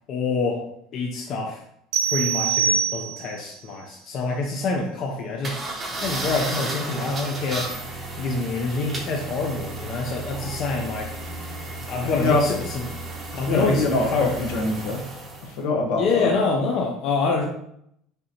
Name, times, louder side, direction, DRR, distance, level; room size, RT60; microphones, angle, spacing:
voice 1, 0.1-0.6 0.9-1.6 2.1-5.6 5.9-7.7 8.2-11.2 11.9-12.9 13.4-14.5 16.0-17.5, left 3 dB, 35° left, 1 dB, 0.5 m, -26 dB
sound 1, 1.9-3.4, right 7 dB, 75° right, 0.7 m, -24 dB
sound 2, 5.4-15.6, right 2 dB, 20° right, 0.7 m, -33 dB
voice 2, 12.0-12.5 13.3-15.0 15.4-16.3, left 3 dB, 70° left, 1 dB, 0.9 m, -24 dB
5.4 x 2.7 x 2.8 m, 0.72 s
cardioid pair, 175°, 0 cm